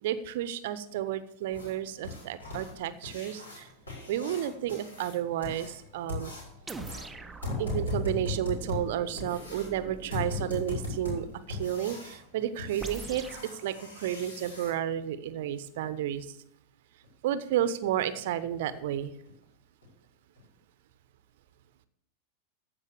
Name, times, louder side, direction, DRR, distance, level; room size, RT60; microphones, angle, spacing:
voice 1, 0.0-3.7 4.1-6.3 7.6-13.2 13.5-16.3 17.2-19.1, right 11 dB, 55° right, 13 dB, 0.7 m, -32 dB
sound 1, 1.5-14.7 17.0-17.1 17.6-17.7 18.1-18.2 18.7-18.8 19.3-19.4 19.8-19.9 20.4-20.5, left 2 dB, 70° left, 5.0 m, -38 dB
sound 2, 6.7-11.0 12.8-13.5, right 3 dB, 10° right, 0.6 m, -44 dB
15.0 x 5.2 x 6.9 m, 0.71 s
figure-of-eight pair, 90°, 0 cm